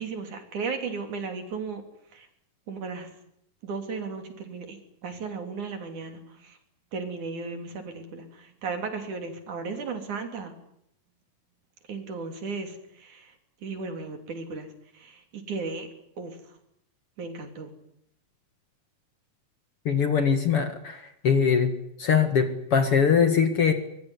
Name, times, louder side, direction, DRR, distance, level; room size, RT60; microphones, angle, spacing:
voice 1, 0.0-1.8 2.1-2.3 2.7-3.1 3.6-6.6 6.9-10.5 11.9-13.3 13.6-15.9 16.2-16.4 17.2-17.7, right 4 dB, 65° right, 6 dB, 4.7 m, -35 dB
voice 2, 19.9-21.7 22.0-23.7, left 6 dB, 45° left, 8 dB, 2.5 m, -22 dB
24.0 x 22.0 x 9.9 m, 0.75 s
omnidirectional pair, 3.8 m